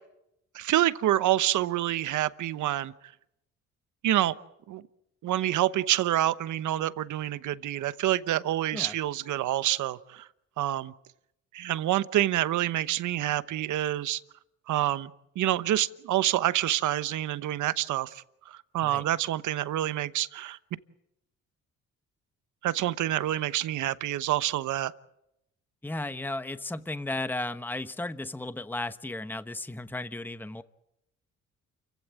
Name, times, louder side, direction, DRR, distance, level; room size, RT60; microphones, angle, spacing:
voice 1, 0.5-2.9 4.0-4.4 4.7-4.8 5.2-10.3 10.6-10.9 11.5-14.2 14.7-15.1 15.4-20.6 22.6-24.9, right 13 dB, 75° right, 15 dB, 1.0 m, -27 dB
voice 2, 25.8-30.6, left 2 dB, 5° left, 11 dB, 1.0 m, -34 dB
29.0 x 16.0 x 9.0 m, 0.84 s
cardioid pair, 90°, 30 cm